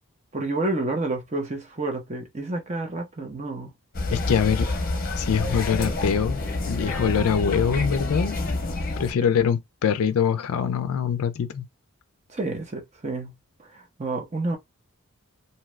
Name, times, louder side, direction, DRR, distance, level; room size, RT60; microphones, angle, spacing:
voice 1, 0.3-3.7 12.3-13.3 13.6-14.6, right 2 dB, 30° right, 0.7 m, -29 dB
sound 1, 3.9-9.1, left 2 dB, 40° left, 0.7 m, -28 dB
voice 2, 4.1-4.7 5.2-6.4 6.7-8.4 9.0-11.7, left 7 dB, 75° left, 0.4 m, -23 dB
2.7 x 2.4 x 3.1 m
head